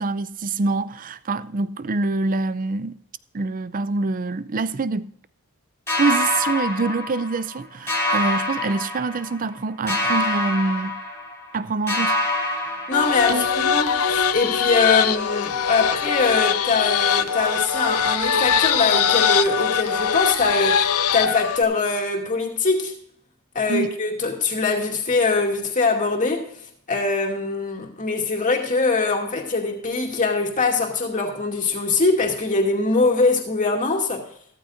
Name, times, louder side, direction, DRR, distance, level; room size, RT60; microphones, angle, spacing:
voice 1, 0.0-3.0 3.3-5.1 6.0-11.0 11.5-12.2 12.4-12.6 13.3-13.5 23.7-23.9, right 3 dB, 35° right, 0.5 m, -25 dB
sound 1, 5.9-7.6 7.9-9.5 9.9-11.6 11.9-13.6, left 1 dB, 10° left, 2.8 m, -26 dB
sound 2, 12.9-21.6, left 7 dB, 80° left, 0.8 m, -22 dB
voice 2, 12.9-23.0 23.5-26.5 26.9-34.2, left 3 dB, 35° left, 2.4 m, -22 dB
15.0 x 14.0 x 2.6 m
head